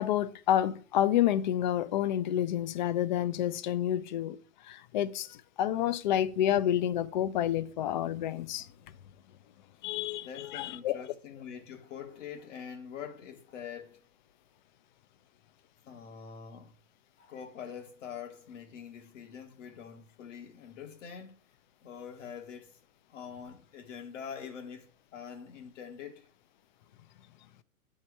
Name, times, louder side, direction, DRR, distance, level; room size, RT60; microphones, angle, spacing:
voice 1, 0.0-4.4 4.7-8.7 9.8-11.0, left 11 dB, 35° left, 0.4 m, -29 dB
voice 2, 9.8-14.0 15.9-16.7 17.2-21.4 21.8-22.8 23.1-26.3, left 7 dB, 55° left, 1.2 m, -45 dB
9.7 x 4.6 x 4.6 m
hypercardioid pair, 125°, 44 cm